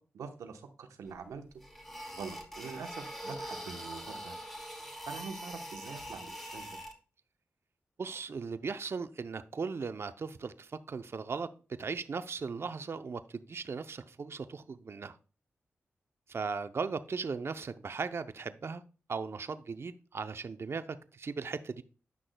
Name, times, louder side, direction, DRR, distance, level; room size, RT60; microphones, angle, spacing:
voice 1, 0.1-1.4 2.1-4.3 5.1-6.7, right 5 dB, 85° right, 7 dB, 1.0 m, -44 dB
sound 1, 1.1-1.2 1.6-6.9, equal, 5° left, 4.1 m, -43 dB
voice 2, 8.0-11.5 11.8-15.2 16.3-18.8 19.1-21.8, right 5 dB, 55° right, 11 dB, 0.5 m, -37 dB
9.4 x 6.1 x 2.2 m, 0.35 s
supercardioid pair, 40°, 5 cm